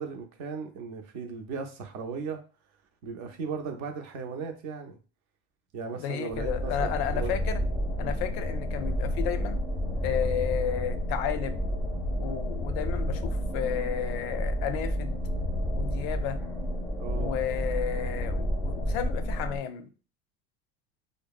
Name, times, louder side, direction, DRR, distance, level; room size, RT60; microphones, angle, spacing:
voice 1, 0.0-2.4 3.0-5.0 5.7-7.4 17.0-17.4, right 5 dB, 60° right, 4 dB, 0.6 m, -36 dB
voice 2, 6.0-7.6 8.0-9.6 10.0-11.6 12.2-15.2 15.7-16.4 17.1-19.9, left 9 dB, 75° left, 10 dB, 0.5 m, -32 dB
sound 1, 6.3-19.6, equal, 5° left, 0.5 m, -30 dB
2.7 x 2.0 x 2.3 m, 0.36 s
supercardioid pair, 120°, 32 cm